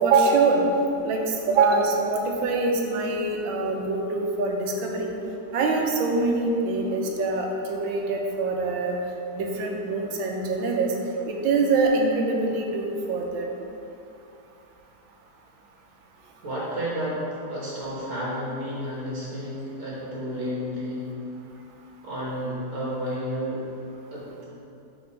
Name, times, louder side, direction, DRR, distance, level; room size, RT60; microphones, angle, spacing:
voice 1, 0.0-0.6 1.0-1.2 1.5-5.1 5.5-9.0 9.3-10.9 11.3-13.5, right 3 dB, 90° right, 1 dB, 1.5 m, -24 dB
voice 2, 16.4-17.2 17.5-21.0 22.0-23.6 24.1-24.5, equal, 45° right, -7 dB, 1.4 m, -31 dB
6.7 x 3.5 x 5.5 m, 2.7 s
omnidirectional pair, 2.1 m